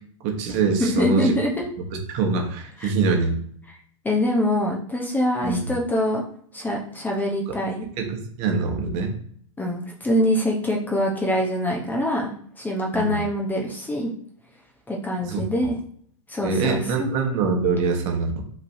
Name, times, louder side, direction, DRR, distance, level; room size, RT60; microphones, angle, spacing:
voice 1, 0.2-1.3 1.9-3.4 5.4-5.7 8.0-9.2 12.9-13.2 15.2-15.4 16.4-18.4, right 4 dB, 45° right, 3 dB, 1.1 m, -24 dB
voice 2, 0.8-1.7 2.8-2.9 4.0-6.2 6.5-7.9 9.6-12.3 12.6-14.1 14.9-15.8 16.3-17.1, left 1 dB, 10° left, -1 dB, 0.8 m, -24 dB
5.1 x 3.3 x 2.7 m, 0.63 s
hypercardioid pair, 120°, 17 cm